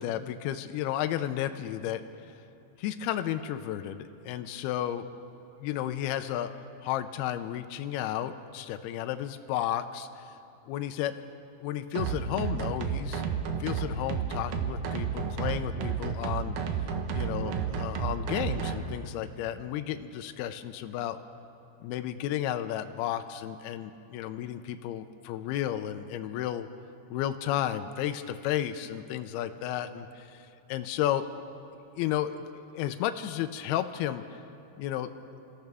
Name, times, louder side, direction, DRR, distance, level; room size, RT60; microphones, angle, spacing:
voice 1, 0.0-2.0 2.3-2.4 2.8-5.1 5.6-6.5 6.8-10.4 10.7-11.1 11.6-13.2 13.6-16.6 17.1-21.2 21.8-26.7 27.1-31.3 32.0-34.4 34.8-35.1, left 11 dB, 85° left, 8 dB, 2.3 m, -33 dB
sound 1, 12.0-18.8, right 7 dB, 70° right, 2.5 m, -31 dB
27.5 x 14.5 x 3.5 m, 3.0 s
omnidirectional pair, 4.9 m